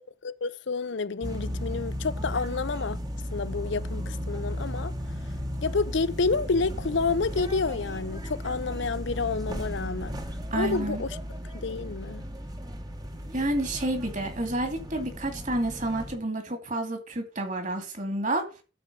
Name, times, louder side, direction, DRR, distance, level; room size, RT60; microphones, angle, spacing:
voice 1, 0.2-3.0 3.3-4.9 5.6-10.2 10.5-11.2 11.5-12.2, left 4 dB, 60° left, 0.6 m, -29 dB
sound 1, 1.2-16.2, equal, 20° right, 1.1 m, -35 dB
voice 2, 10.5-11.0 13.3-18.4, right 1 dB, 40° right, 2.4 m, -29 dB
12.5 x 4.5 x 6.7 m
head